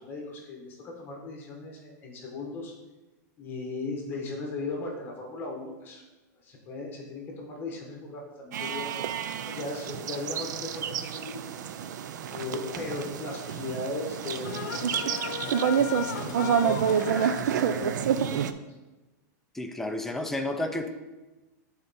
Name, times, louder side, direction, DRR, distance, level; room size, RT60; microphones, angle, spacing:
voice 1, 0.0-2.7 3.4-6.0 6.4-9.1 9.5-11.4 11.8-14.6 15.9-18.5, left 3 dB, 20° left, 0 dB, 1.2 m, -37 dB
sound 1, 8.5-18.5, right 8 dB, 80° right, 0.4 m, -29 dB
sound 2, 12.3-12.4 14.1-17.4, left 7 dB, 80° left, 0.7 m, -36 dB
voice 2, 19.5-20.9, left 1 dB, 5° left, 4 dB, 0.4 m, -31 dB
8.5 x 3.9 x 4.1 m, 1.1 s
supercardioid pair, 170°, 9 cm